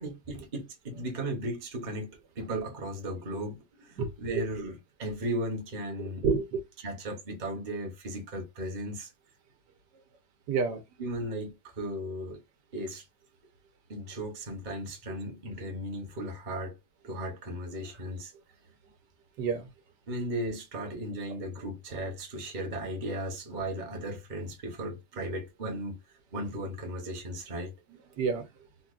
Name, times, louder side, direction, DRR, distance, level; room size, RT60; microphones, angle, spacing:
voice 1, 0.0-6.2 6.8-9.1 11.0-12.4 12.7-13.0 13.9-16.8 17.0-18.3 20.1-25.9 26.3-27.7, right 1 dB, 35° right, 0.9 m, -36 dB
voice 2, 4.0-4.4 6.0-6.6 10.5-10.8 19.4-19.7 28.2-28.4, right 5 dB, 80° right, 1.4 m, -29 dB
4.2 x 2.3 x 2.4 m
omnidirectional pair, 1.8 m